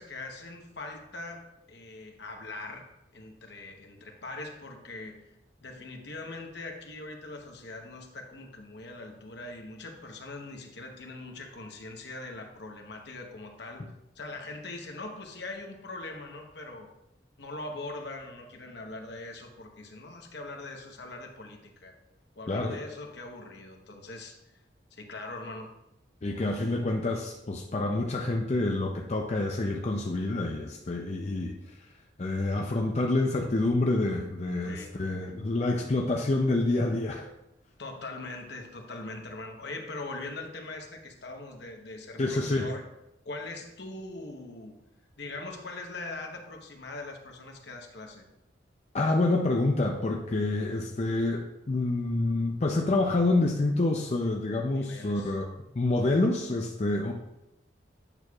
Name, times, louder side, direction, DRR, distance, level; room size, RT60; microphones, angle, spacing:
voice 1, 0.0-1.4 1.7-5.2 5.6-13.8 14.2-16.9 17.4-21.9 22.4-24.4 24.9-25.7 34.6-34.9 37.8-42.8 43.2-44.7 45.2-48.2 54.7-55.4, left 2 dB, 65° left, 2 dB, 1.0 m, -41 dB
voice 2, 22.5-22.8 26.2-31.6 32.2-37.3 42.2-42.7 48.9-55.5 55.8-57.1, left 2 dB, 35° left, 1 dB, 0.5 m, -27 dB
8.8 x 6.2 x 2.4 m, 0.87 s
head